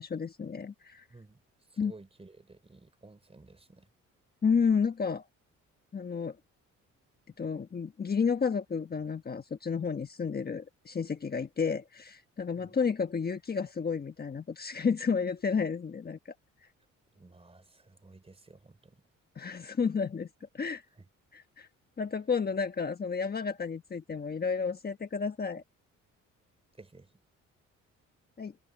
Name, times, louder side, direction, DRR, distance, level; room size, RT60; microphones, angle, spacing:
voice 1, 0.0-1.0 1.8-1.9 4.4-5.3 5.9-6.4 7.4-16.2 19.3-20.3 20.5-20.8 21.3-21.7 22.0-25.6 28.4-28.5, left 5 dB, 30° left, 1.3 m, -31 dB
voice 2, 1.8-3.9 12.6-12.8 17.1-19.0 21.0-21.1 26.8-27.1, right 3 dB, 20° right, 4.2 m, -54 dB
cardioid pair, 90°, 30 cm